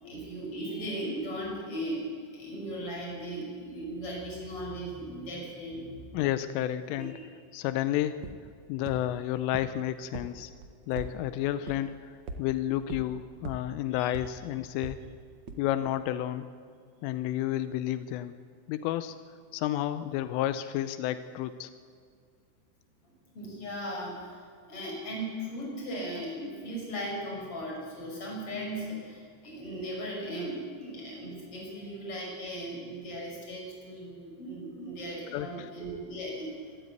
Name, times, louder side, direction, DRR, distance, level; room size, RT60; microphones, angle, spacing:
voice 1, 0.0-6.1 6.9-7.3 13.9-14.1 23.4-24.4 24.7-36.5, right 1 dB, 30° left, -2 dB, 6.9 m, -37 dB
voice 2, 6.1-7.1 7.5-8.2 8.7-10.5 10.9-15.0 15.6-16.5 17.0-18.4 18.7-19.2 19.5-21.7 34.8-35.0 35.3-35.7, left 13 dB, 90° left, 12 dB, 3.3 m, -31 dB
sound 1, 8.2-8.3 8.9-9.0 9.5-9.6 10.1-10.2 10.6-11.1 11.7-11.8 12.3-12.4 12.9-13.0 13.5-13.6 14.1-14.2 14.8-14.9 15.5-15.6, right 4 dB, 65° right, 1.7 m, -37 dB
25.5 x 13.5 x 9.4 m, 2.1 s
omnidirectional pair, 5.7 m